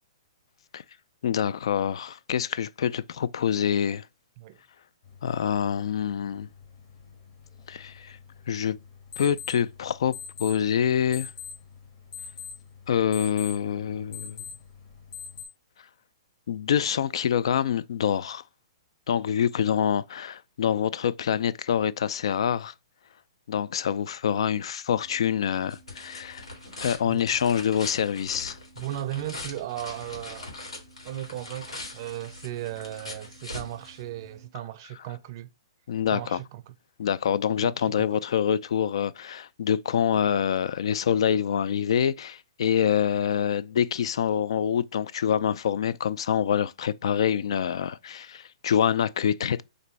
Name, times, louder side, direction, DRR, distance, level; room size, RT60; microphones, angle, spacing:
voice 1, 1.2-4.1 5.2-6.5 7.7-8.2 8.5-8.8 9.2-10.1 10.4-11.3 12.9-14.4 16.5-18.4 19.1-22.7 23.5-26.4 26.8-28.6 35.9-36.4 37.0-49.6, left 8 dB, 65° left, 0.3 m, -26 dB
sound 1, 5.0-15.5, left 6 dB, 35° left, 1.6 m, -44 dB
sound 2, 25.0-34.5, left 2 dB, 85° left, 2.0 m, -42 dB
voice 2, 28.8-30.5 31.1-35.5 36.1-36.7 37.6-38.1, right 13 dB, 45° right, 0.4 m, -36 dB
3.8 x 2.6 x 3.1 m
hypercardioid pair, 135°, 3 cm